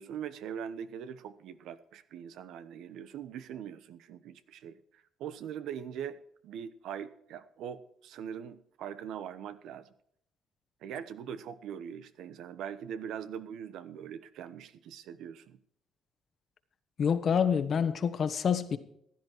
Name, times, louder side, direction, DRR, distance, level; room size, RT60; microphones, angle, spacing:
voice 1, 0.0-6.2 6.4-9.9 10.8-15.6, right 8 dB, 85° right, 1.0 m, -42 dB
voice 2, 17.0-18.8, left 7 dB, 55° left, 1.3 m, -27 dB
15.5 x 10.5 x 4.6 m
cardioid pair, 90°, 0 cm